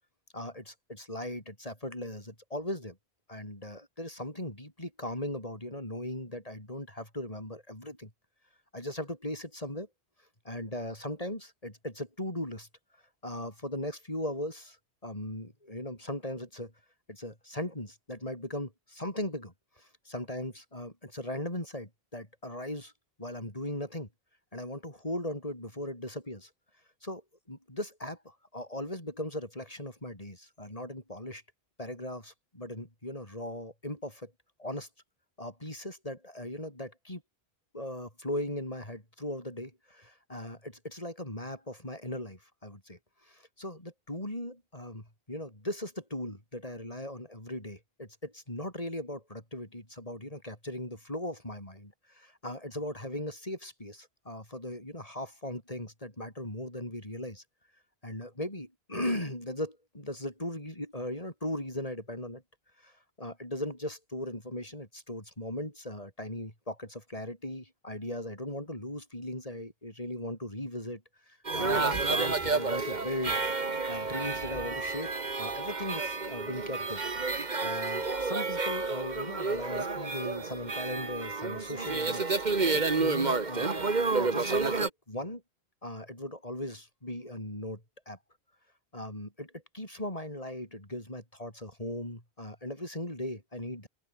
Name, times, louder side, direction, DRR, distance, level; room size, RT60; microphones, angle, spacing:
voice 1, 0.3-3.0 3.3-8.1 8.7-9.9 10.4-12.7 13.2-14.8 15.0-16.7 17.1-22.9 23.2-24.1 24.5-26.5 27.0-27.2 27.5-31.4 31.8-34.3 34.6-34.9 35.4-37.2 37.7-57.4 58.0-62.4 62.8-73.4 73.9-77.0 77.6-82.2 82.7-83.8 84.2-85.4 85.8-88.2 88.9-93.9, left 1 dB, 35° left, 6.5 m, -38 dB
sound 1, 71.4-84.9, right 3 dB, 45° right, 1.8 m, -30 dB
open air
omnidirectional pair, 1.1 m